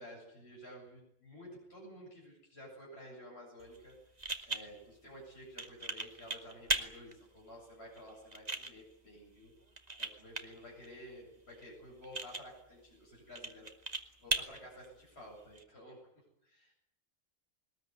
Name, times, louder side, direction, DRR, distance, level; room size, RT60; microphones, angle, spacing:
voice 1, 0.0-4.0 4.5-9.5 10.0-16.1 16.4-16.7, equal, 55° left, -3 dB, 8.4 m, -52 dB
sound 1, 3.6-15.6, right 2 dB, 30° right, 2.0 m, -41 dB
22.0 x 20.0 x 9.6 m, 0.73 s
omnidirectional pair, 1.3 m